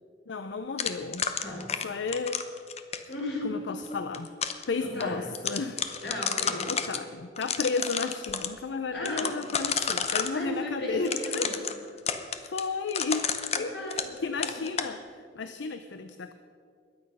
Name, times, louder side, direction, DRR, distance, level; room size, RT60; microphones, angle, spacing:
voice 1, 0.3-1.3 1.7-2.4 3.4-4.3 4.7-5.8 6.7-11.5 12.5-13.3 13.6-16.3, left 4 dB, 90° left, 10 dB, 0.6 m, -33 dB
sound 1, 0.8-3.1 3.9-4.6 5.0-5.1 5.3-7.0 7.4-8.5 9.1-10.3 11.0-14.2 14.4-14.9, left 7 dB, 35° left, 0.8 m, -31 dB
voice 2, 3.1-3.6 4.8-5.3 6.0-6.7 8.9-9.3 10.3-11.6 13.5-14.6, left 1 dB, 70° left, -1 dB, 4.4 m, -35 dB
22.0 x 8.8 x 5.5 m, 2.3 s
head